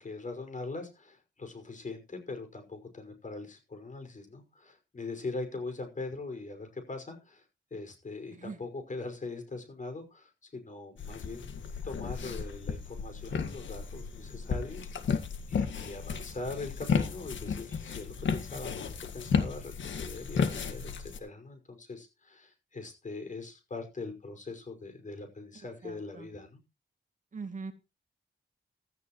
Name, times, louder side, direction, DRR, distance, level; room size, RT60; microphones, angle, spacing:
voice 1, 0.0-7.4 7.7-26.6, left 3 dB, 40° left, 7 dB, 5.6 m, -42 dB
voice 2, 8.3-8.6 25.8-26.3 27.3-27.7, right 4 dB, 40° right, 6 dB, 2.5 m, -41 dB
sound 1, 11.0-21.2, left 6 dB, 80° left, 1.8 m, -33 dB
16.0 x 13.5 x 3.1 m, 0.28 s
wide cardioid pair, 110°, 19 cm